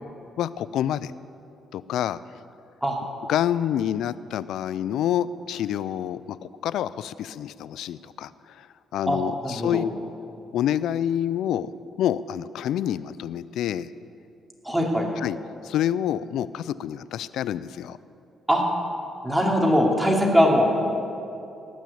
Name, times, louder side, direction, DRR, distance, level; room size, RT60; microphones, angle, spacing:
voice 1, 0.4-1.1 1.7-2.2 3.3-8.7 8.9-9.9 10.5-11.7 12.0-13.9 15.2-15.4 15.6-18.0, left 10 dB, 80° left, 16 dB, 0.4 m, -27 dB
voice 2, 9.1-9.8 14.6-15.1 18.5-18.6 19.2-20.7, equal, 5° right, -1 dB, 2.7 m, -21 dB
18.5 x 6.2 x 8.5 m, 2.8 s
cardioid pair, 90°, 0 cm